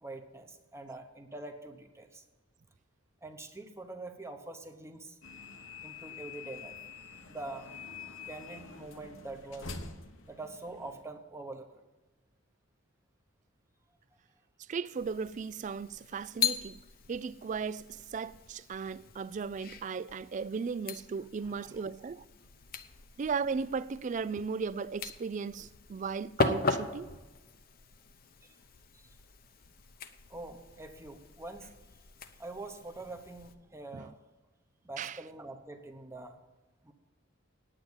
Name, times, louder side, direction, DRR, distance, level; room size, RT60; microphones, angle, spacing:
voice 1, 0.0-2.2 3.2-5.2 5.8-6.8 7.3-7.7 8.2-9.7 10.3-11.8 21.5-21.8 28.4-28.6 28.9-29.2 30.3-31.7 32.4-34.2 34.8-36.4 36.8-36.9, right 2 dB, 15° right, 0.9 m, -45 dB
sound 1, 5.2-11.1, left 5 dB, 75° left, 1.1 m, -46 dB
voice 2, 14.7-16.8 17.1-22.3 23.2-27.1 33.9-34.1 35.0-35.2, right 5 dB, 40° right, 0.3 m, -36 dB
sound 2, 14.9-33.5, left 4 dB, 45° left, 0.8 m, -39 dB
9.4 x 9.0 x 8.0 m
head